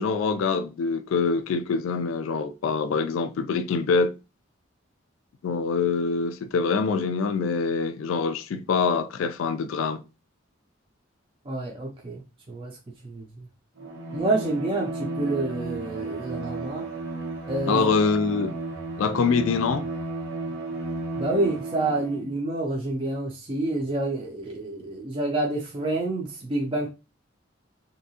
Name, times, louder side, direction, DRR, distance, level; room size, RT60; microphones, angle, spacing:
voice 1, 0.0-4.1 5.4-10.0 17.7-18.5 19.0-19.9, left 5 dB, 90° left, 0.3 m, -25 dB
voice 2, 11.5-12.2 12.5-12.7 13.0-13.3 14.1-16.8 17.5-17.9 21.2-26.9, right 2 dB, 25° right, 0.5 m, -28 dB
Bowed string instrument, 13.8-22.3, right 2 dB, 60° right, 1.0 m, -33 dB
3.4 x 2.7 x 2.7 m
head